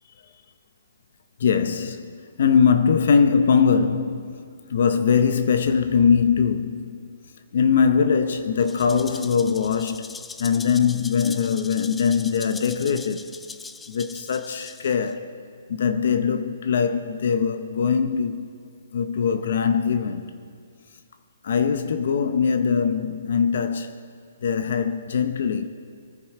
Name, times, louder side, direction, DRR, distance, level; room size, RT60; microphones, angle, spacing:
voice 1, 1.4-4.4 4.7-7.0 7.5-13.3 13.9-15.3 15.7-18.5 18.9-20.3 21.4-23.9 24.4-25.7, left 6 dB, 60° left, 0.7 m, -22 dB
Rattle (instrument), 8.6-15.1, left 4 dB, 5° left, 0.3 m, -41 dB
23.5 x 9.6 x 4.4 m
hypercardioid pair, 160°, 0 cm